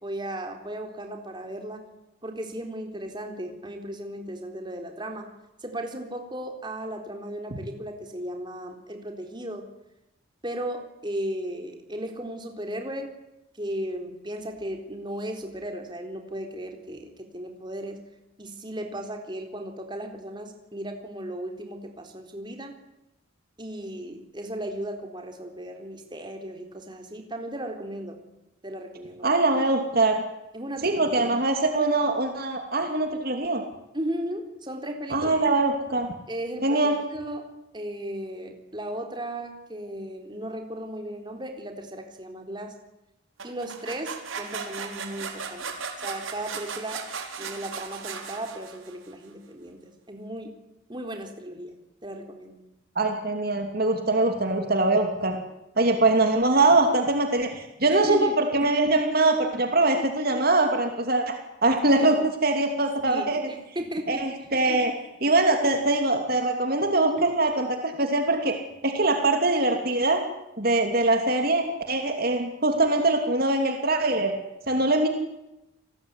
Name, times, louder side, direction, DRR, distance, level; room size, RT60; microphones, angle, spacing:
voice 1, 0.0-1.8 2.2-5.3 5.6-9.7 10.4-13.1 13.5-18.0 18.4-22.7 23.6-28.2 28.6-29.4 30.5-31.3 33.9-35.4 36.3-42.7 43.4-45.6 46.0-47.0 47.4-50.5 50.9-51.7 52.0-52.6 57.9-58.4 62.0-62.1 63.1-64.3, right 1 dB, 20° right, 3 dB, 3.9 m, -36 dB
voice 2, 29.2-30.2 30.8-33.6 35.1-36.1 36.6-36.9 52.9-55.4 55.8-63.4 64.1-64.9 65.2-68.5 68.8-70.2 70.6-74.3 74.7-75.1, right 2 dB, 45° right, 4 dB, 2.9 m, -23 dB
sound 1, 43.4-49.1, right 5 dB, 70° right, 5.1 m, -36 dB
30.0 x 19.5 x 9.8 m, 0.92 s
head